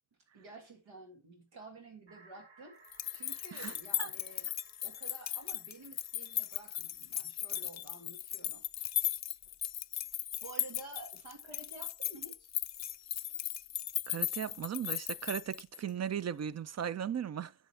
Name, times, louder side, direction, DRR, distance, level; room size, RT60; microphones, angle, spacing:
voice 1, 0.3-2.8 3.1-4.5 4.8-8.9 10.1-12.5, right 3 dB, 80° right, 1.8 m, -51 dB
sound 1, 2.1-7.8, right 3 dB, 60° right, 2.2 m, -63 dB
sound 2, 2.8-15.9, left 11 dB, 40° left, 0.4 m, -37 dB
voice 2, 14.1-17.5, right 8 dB, 35° right, 0.5 m, -37 dB
7.3 x 7.2 x 3.3 m
cardioid pair, 80°, 46 cm